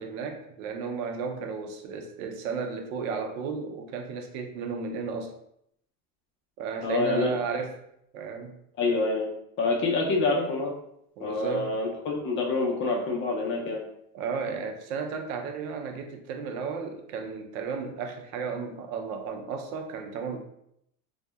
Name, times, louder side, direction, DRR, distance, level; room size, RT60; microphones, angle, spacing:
voice 1, 0.0-5.3 6.6-7.8 8.1-8.6 11.2-11.8 14.1-20.4, right 5 dB, 75° right, 5 dB, 0.6 m, -34 dB
voice 2, 6.8-7.3 8.8-9.3 9.6-10.7 11.2-13.8, left 3 dB, 30° left, -1 dB, 0.4 m, -26 dB
2.6 x 2.1 x 2.2 m, 0.75 s
supercardioid pair, 130°, 41 cm